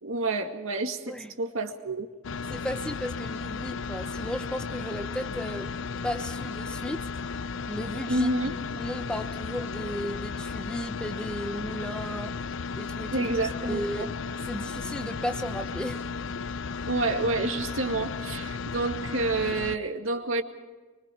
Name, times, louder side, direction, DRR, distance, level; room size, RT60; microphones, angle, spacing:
voice 1, 0.0-2.1 8.1-8.6 13.1-14.1 16.9-20.4, right 2 dB, 80° right, 5 dB, 2.1 m, -29 dB
sound 1, 2.2-19.8, left 4 dB, 65° left, 0.6 m, -34 dB
voice 2, 2.5-5.7 6.0-7.1 7.7-8.3 8.8-12.3 12.8-13.3 13.7-14.1 14.5-16.1, equal, 5° left, 7 dB, 1.0 m, -35 dB
24.5 x 24.5 x 4.6 m, 1.3 s
head